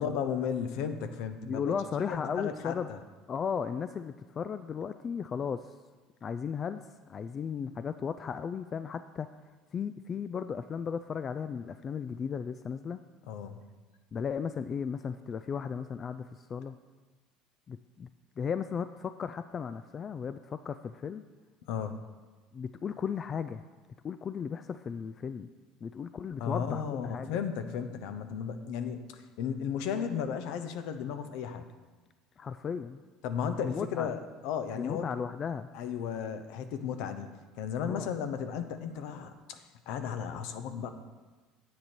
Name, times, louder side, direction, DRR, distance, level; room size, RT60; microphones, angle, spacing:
voice 1, 0.0-1.7 2.0-3.0 13.3-13.6 21.7-22.0 26.4-31.7 33.2-35.1 35.7-37.3 37.6-40.9, left 7 dB, 70° left, 9 dB, 0.8 m, -34 dB
voice 2, 1.4-2.9 3.3-5.7 6.2-9.3 9.7-13.0 14.1-16.8 17.7-18.1 18.4-21.2 22.5-23.6 24.0-25.5 25.8-27.4 32.4-33.0 33.6-34.1 34.7-35.7 37.8-38.1, left 6 dB, 40° left, 11 dB, 0.3 m, -35 dB
9.4 x 8.2 x 4.4 m, 1.3 s
hypercardioid pair, 80°, 0 cm